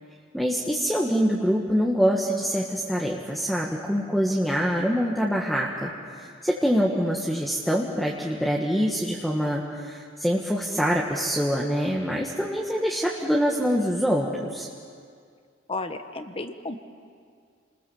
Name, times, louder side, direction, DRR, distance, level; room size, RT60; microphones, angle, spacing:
voice 1, 0.3-5.9 6.4-14.7, equal, ahead, -3 dB, 1.6 m, -25 dB
voice 2, 15.7-16.8, left 3 dB, 30° left, 8 dB, 1.2 m, -33 dB
29.5 x 20.5 x 7.3 m, 2.2 s
head